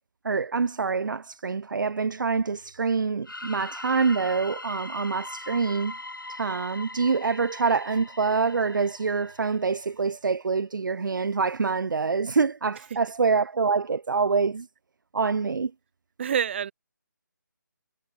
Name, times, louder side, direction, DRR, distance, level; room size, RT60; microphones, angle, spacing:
voice 1, 0.2-6.0 6.3-14.7 15.1-15.7, right 5 dB, 75° right, 0.4 m, -26 dB
sound 1, 3.2-9.9, left 2 dB, 90° left, 5.4 m, -41 dB
voice 2, 16.2-16.7, right 8 dB, 35° right, 1.4 m, -26 dB
figure-of-eight pair, 155°, 11 cm